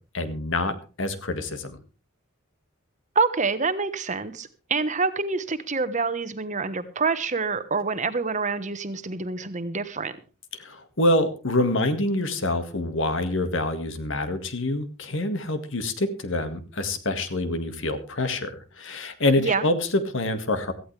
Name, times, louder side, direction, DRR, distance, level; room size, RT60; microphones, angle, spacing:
voice 1, 0.1-1.8 10.6-20.7, left 2 dB, 60° left, 1.9 m, -26 dB
voice 2, 3.1-10.2 19.4-19.6, right 4 dB, 35° right, 1.2 m, -26 dB
17.5 x 14.5 x 3.4 m
head